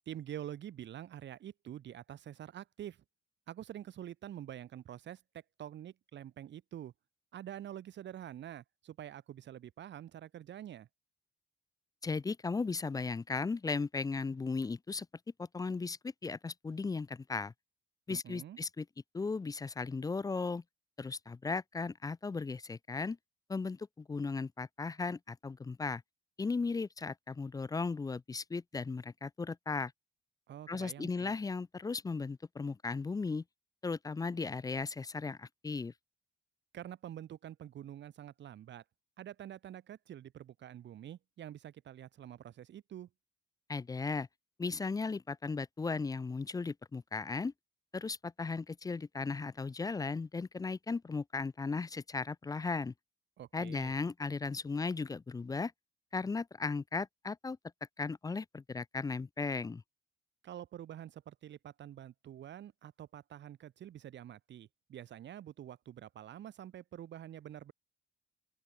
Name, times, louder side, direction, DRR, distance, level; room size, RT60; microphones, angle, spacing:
voice 1, 0.1-3.0 3.5-5.2 5.6-6.9 7.3-10.9 18.1-18.6 30.5-31.3 36.7-38.8 39.2-43.1 53.4-53.9 60.4-67.7, right 11 dB, 65° right, 1.4 m, -47 dB
voice 2, 12.0-15.1 15.4-17.5 18.1-18.9 19.1-20.6 21.0-23.2 23.5-26.0 26.4-29.9 30.7-33.4 33.8-35.9 43.7-44.3 44.6-47.5 47.9-52.9 53.5-55.7 56.1-57.6 58.0-59.8, left 4 dB, 20° left, 0.4 m, -36 dB
open air
cardioid pair, 90°, 20 cm